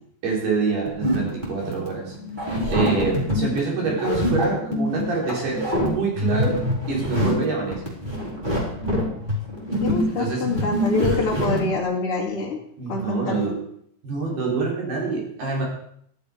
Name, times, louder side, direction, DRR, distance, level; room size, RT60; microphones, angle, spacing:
voice 1, 0.2-2.2 2.7-6.6 6.9-7.8 10.2-10.5 11.3-11.4 12.8-13.6 14.0-15.6, right 4 dB, 60° right, -2 dB, 5.8 m, -26 dB
sound 1, 0.9-11.8, equal, 10° right, 3.6 m, -25 dB
voice 2, 9.8-12.6 12.9-13.4, left 3 dB, 40° left, 0 dB, 2.2 m, -26 dB
14.5 x 12.0 x 5.0 m, 0.68 s
omnidirectional pair, 5.4 m